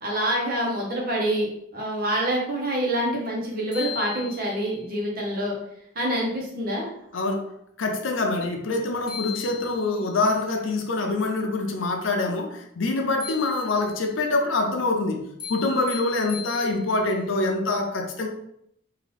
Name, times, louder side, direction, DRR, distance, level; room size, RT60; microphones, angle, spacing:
voice 1, 0.0-5.5 5.9-6.9, right 1 dB, 45° right, -2 dB, 1.0 m, -26 dB
sound 1, 3.3-3.4 3.7-4.8 8.7-8.8 9.1-10.1 13.2-14.1 15.4-17.1, left 9 dB, 20° left, 0.9 m, -38 dB
voice 2, 7.1-7.5 7.8-15.2 15.5-18.3, left 2 dB, 85° left, 3 dB, 0.6 m, -25 dB
3.8 x 2.7 x 3.4 m, 0.75 s
head